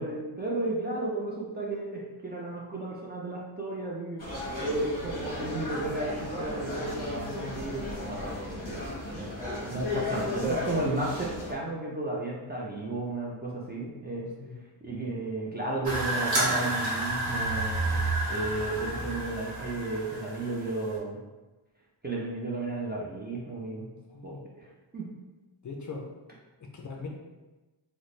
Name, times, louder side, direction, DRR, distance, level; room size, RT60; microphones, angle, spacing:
voice 1, 0.0-4.2 4.6-8.8 9.1-9.3 9.7-14.3 14.8-18.0 18.3-21.2 22.0-23.9 24.2-25.1, right 2 dB, 25° right, -4 dB, 0.3 m, -33 dB
sound 1, 4.2-11.5, left 2 dB, 20° left, 1.2 m, -35 dB
sound 2, 15.8-20.9, right 2 dB, 50° right, 1.0 m, -30 dB
voice 2, 25.6-26.1 26.6-27.1, left 4 dB, 45° left, 0 dB, 0.4 m, -40 dB
4.0 x 2.1 x 3.1 m, 1.1 s
wide cardioid pair, 175°, 46 cm